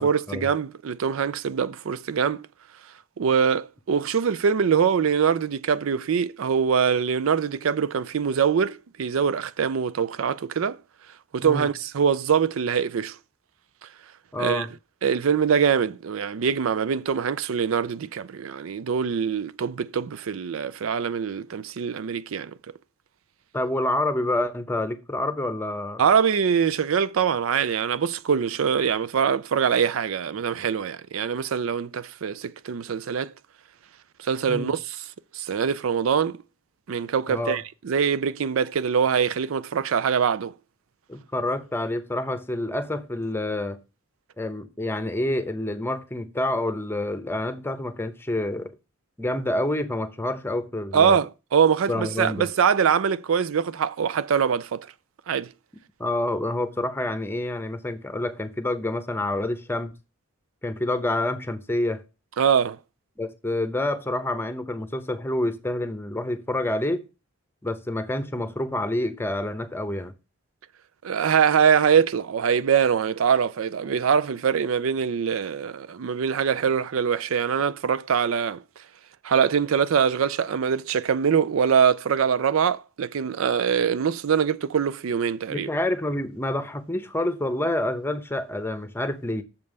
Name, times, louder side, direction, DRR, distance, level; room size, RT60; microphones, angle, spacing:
voice 1, 0.0-2.5 3.2-10.8 11.3-13.1 14.4-14.7 15.0-22.5 26.0-33.3 34.2-35.0 35.3-36.4 36.9-40.5 50.9-54.9 55.3-55.5 62.4-62.8 71.0-78.6 79.2-85.7, right 7 dB, 80° right, 0.4 m, -23 dB
voice 2, 14.3-14.7 23.5-26.0 34.5-34.7 37.3-37.6 41.1-43.8 44.4-48.7 49.2-51.2 51.9-52.5 56.0-60.0 60.6-62.0 63.2-67.0 67.6-70.1 85.5-89.4, left 1 dB, 10° left, 0.8 m, -28 dB
6.8 x 5.3 x 6.5 m
head